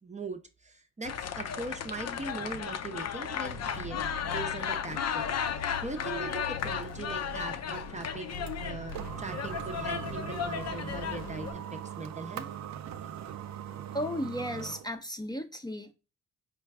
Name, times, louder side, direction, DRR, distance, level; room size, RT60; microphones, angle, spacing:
voice 1, 0.0-12.5 13.0-13.1, right 3 dB, 20° right, 0.7 m, -41 dB
sound 1, 1.0-11.5, left 8 dB, 55° left, 0.6 m, -35 dB
sound 2, 3.4-11.5, left 2 dB, 80° left, 1.0 m, -43 dB
sound 3, 5.9-14.9, right 10 dB, 60° right, 0.5 m, -41 dB
voice 2, 13.9-15.9, equal, 15° left, 0.6 m, -35 dB
4.5 x 2.2 x 3.5 m
supercardioid pair, 50°, 32 cm